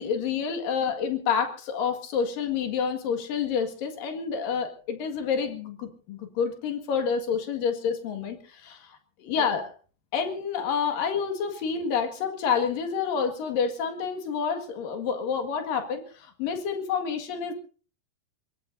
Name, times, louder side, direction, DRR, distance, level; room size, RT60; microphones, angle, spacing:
voice 1, 0.0-9.0 9.2-9.7 10.1-17.5, left 6 dB, 55° left, 6 dB, 2.9 m, -28 dB
25.0 x 21.5 x 2.7 m, 0.39 s
omnidirectional pair, 5.7 m